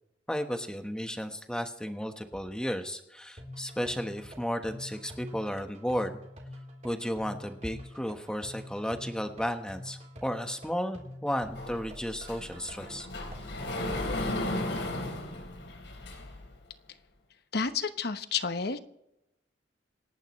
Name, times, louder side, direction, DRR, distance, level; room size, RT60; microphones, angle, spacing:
voice 1, 0.3-6.1 6.8-13.1, equal, 5° left, 6 dB, 1.2 m, -34 dB
sound 1, 3.4-13.4, left 1 dB, 40° right, 3.9 m, -46 dB
Sliding door, 11.5-16.5, left 1 dB, 80° left, 3.9 m, -35 dB
voice 2, 17.5-18.8, left 5 dB, 60° left, 10 dB, 1.0 m, -30 dB
26.5 x 11.5 x 3.2 m, 0.87 s
head